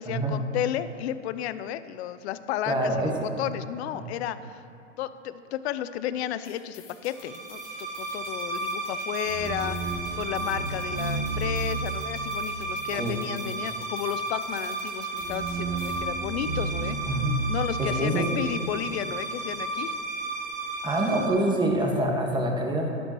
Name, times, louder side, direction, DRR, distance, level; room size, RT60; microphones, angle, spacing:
voice 1, 0.0-4.6 5.0-17.0 17.5-19.9, left 11 dB, 60° left, 13 dB, 0.6 m, -33 dB
voice 2, 2.7-3.4 3.9-4.0 12.9-13.2 17.1-17.4 17.8-18.3 20.8-22.9, right 1 dB, 10° right, 1 dB, 1.6 m, -26 dB
sound 1, 6.4-16.1, left 6 dB, 85° left, 2.1 m, -52 dB
sound 2, 7.1-21.3, right 3 dB, 80° right, 2.0 m, -32 dB
11.5 x 11.5 x 3.1 m, 2.7 s
hypercardioid pair, 105°, 38 cm